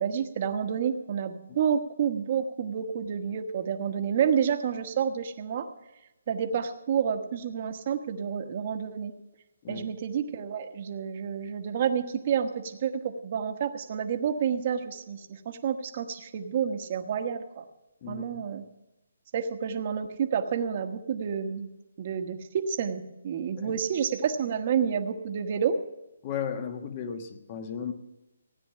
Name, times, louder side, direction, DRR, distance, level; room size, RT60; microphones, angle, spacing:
voice 1, 0.0-5.7 6.3-9.1 9.7-17.6 18.1-18.6 19.3-21.7 22.0-25.8, right 7 dB, 35° right, 6 dB, 1.2 m, -29 dB
voice 2, 18.0-18.4 23.6-23.8 26.2-27.9, left 7 dB, 30° left, 7 dB, 1.2 m, -35 dB
16.5 x 9.6 x 5.7 m, 0.99 s
hypercardioid pair, 165°, 0 cm